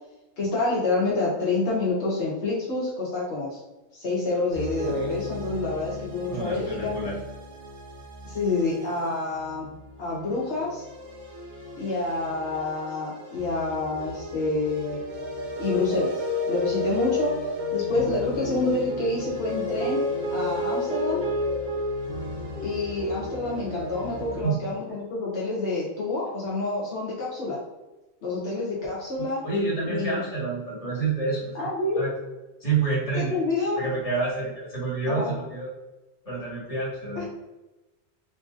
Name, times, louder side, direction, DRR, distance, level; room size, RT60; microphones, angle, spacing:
voice 1, 0.4-3.6 3.9-7.0 8.2-9.7 10.0-10.9 11.7-15.0 15.6-20.0 20.3-21.2 22.6-27.6 28.2-29.4 29.8-30.2 31.5-32.0 33.1-33.8 35.1-35.3 37.2-37.3, left 2 dB, 75° left, -6 dB, 1.0 m, -28 dB
sound 1, 4.5-24.5, left 2 dB, 50° right, 0.8 m, -32 dB
voice 2, 6.3-7.2 24.4-24.6 29.2-31.6 31.9-32.1 32.6-33.3 33.7-35.7 36.2-37.2, right 3 dB, 30° left, -7 dB, 1.4 m, -28 dB
3.1 x 2.6 x 2.4 m, 1.1 s
omnidirectional pair, 1.1 m